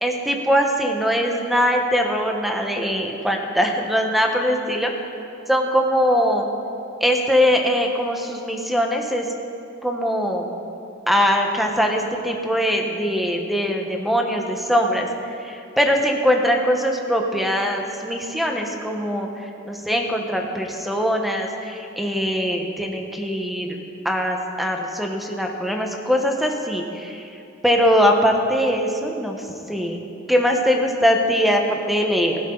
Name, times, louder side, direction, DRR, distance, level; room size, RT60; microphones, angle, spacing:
voice 1, 0.0-4.9 5.5-6.5 7.0-9.3 9.8-10.5 11.1-15.1 15.4-19.3 19.6-23.8 24.0-27.2 27.6-29.4 29.7-32.4, equal, ahead, 2 dB, 1.2 m, -21 dB
16.0 x 15.5 x 4.0 m, 2.7 s
head